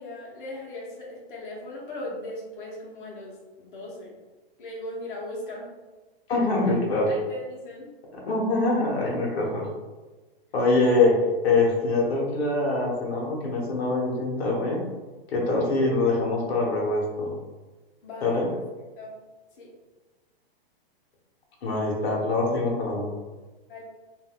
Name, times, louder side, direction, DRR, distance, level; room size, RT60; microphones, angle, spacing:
voice 1, 0.0-4.1 4.6-5.7 6.6-6.8 7.1-7.9 10.9-11.0 15.6-15.8 18.0-18.6 19.0-19.2 19.6-19.7 23.7-23.8, left 1 dB, 55° left, -4 dB, 0.9 m, -38 dB
voice 2, 6.3-7.1 8.1-9.6 10.5-11.2 11.4-14.8 15.3-17.3 18.2-18.5 21.6-23.1, left 2 dB, 90° left, -2 dB, 1.0 m, -24 dB
3.5 x 2.6 x 2.2 m, 1.2 s
hypercardioid pair, 165°, 31 cm